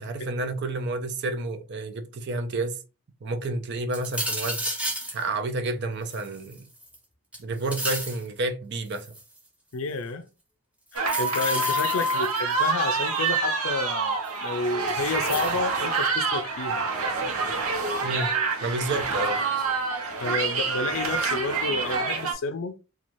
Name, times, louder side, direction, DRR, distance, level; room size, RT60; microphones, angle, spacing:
voice 1, 0.0-2.8 3.2-4.8 5.1-6.6 7.4-9.1 18.0-18.3 18.6-19.4, right 2 dB, 50° right, 0.5 m, -30 dB
sound 1, 3.9-5.2 6.1-7.0 7.3-8.2 8.9-9.4 11.0-12.5 14.3-14.4 15.2-15.6, right 1 dB, 5° right, 0.7 m, -32 dB
voice 2, 9.7-10.3 10.9-16.8 20.2-22.7, left 3 dB, 65° left, 0.4 m, -30 dB
sound 2, 10.9-22.3, right 3 dB, 80° right, 0.8 m, -27 dB
2.6 x 2.3 x 3.0 m
head